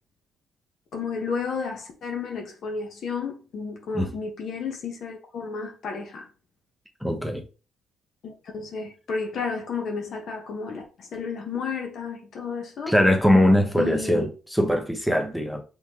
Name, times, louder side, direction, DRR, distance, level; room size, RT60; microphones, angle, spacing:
voice 1, 0.9-6.3 8.2-12.9 13.8-14.3, left 5 dB, 65° left, 1.2 m, -32 dB
voice 2, 7.0-7.4 12.9-15.6, equal, ahead, 0.8 m, -21 dB
4.5 x 3.5 x 2.9 m
cardioid pair, 90°, 0 cm